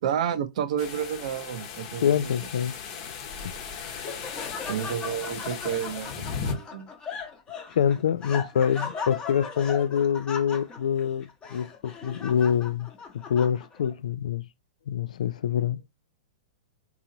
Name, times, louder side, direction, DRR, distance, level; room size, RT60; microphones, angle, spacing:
voice 1, 0.0-2.3 4.7-6.9, right 9 dB, 65° right, 0.6 m, -30 dB
sound 1, 0.8-6.5, left 6 dB, 45° left, 1.0 m, -37 dB
voice 2, 2.0-2.8 3.4-3.5 7.8-12.9 13.1-14.4 14.9-15.8, left 8 dB, 80° left, 0.4 m, -25 dB
Laughter, 3.4-13.9, left 5 dB, 20° left, 1.0 m, -38 dB
3.8 x 2.9 x 2.8 m
hypercardioid pair, 130°, 4 cm